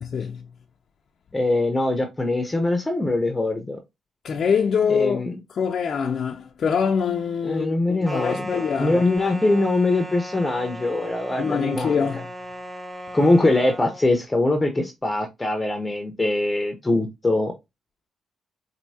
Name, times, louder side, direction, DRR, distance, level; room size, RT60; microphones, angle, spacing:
voice 1, 0.0-0.4 4.2-5.2 5.5-9.0 11.4-12.3, left 6 dB, 55° left, 0.4 m, -24 dB
voice 2, 1.3-3.8 4.9-5.4 7.4-12.1 13.1-17.5, left 2 dB, 15° left, 0.7 m, -22 dB
sound 1, 8.0-14.0, equal, 20° right, 0.8 m, -36 dB
4.4 x 2.7 x 2.7 m
cardioid pair, 85°, 0 cm